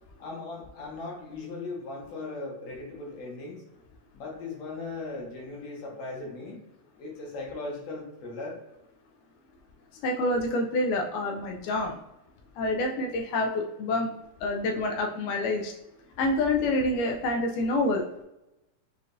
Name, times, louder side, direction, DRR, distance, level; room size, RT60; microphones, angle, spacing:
voice 1, 0.2-3.6 4.1-6.6 7.0-8.6, left 3 dB, 65° left, -2 dB, 2.0 m, -38 dB
voice 2, 10.0-12.0 12.6-14.1 14.4-15.7 16.2-18.0, left 2 dB, 80° left, 2 dB, 1.9 m, -27 dB
6.5 x 2.5 x 2.5 m, 0.92 s
omnidirectional pair, 3.8 m